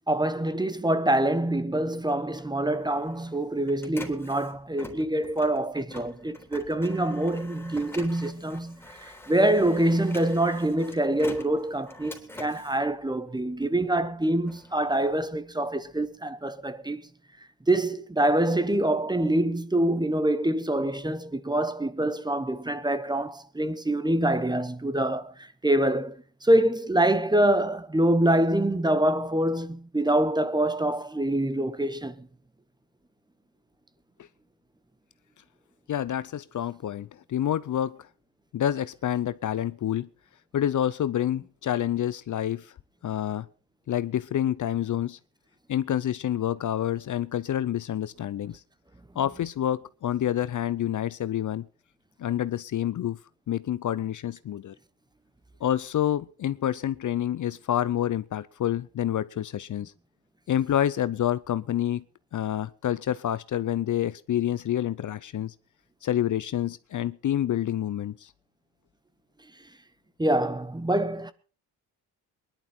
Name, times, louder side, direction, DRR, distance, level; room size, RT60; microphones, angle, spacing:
voice 1, 0.1-17.0 17.7-25.3 25.6-32.3 70.2-71.3, right 1 dB, 10° right, 0.9 m, -25 dB
Printer, 2.4-13.8 14.2-16.1, left 1 dB, 5° left, 3.6 m, -46 dB
voice 2, 35.9-38.1 38.5-40.1 40.5-42.7 43.0-43.5 43.9-45.2 45.7-48.6 49.2-51.7 52.2-53.2 53.5-54.7 55.6-59.9 60.5-62.0 62.3-65.5 66.0-68.3, left 11 dB, 50° left, 0.6 m, -28 dB
21.5 x 11.0 x 4.4 m
cardioid pair, 105°, 39 cm